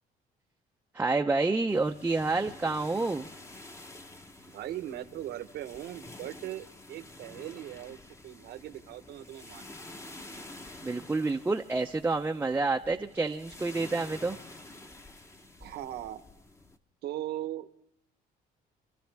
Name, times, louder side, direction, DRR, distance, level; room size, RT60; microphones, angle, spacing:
voice 1, 0.9-3.3 10.8-14.4, right 3 dB, 10° right, 3 dB, 0.6 m, -28 dB
sound 1, 1.7-16.8, left 2 dB, 15° left, 1.0 m, -49 dB
voice 2, 4.5-8.0 8.2-9.8 15.6-16.2 17.0-17.7, right 13 dB, 75° right, 9 dB, 1.1 m, -39 dB
27.0 x 13.5 x 3.5 m, 0.72 s
cardioid pair, 110°, 17 cm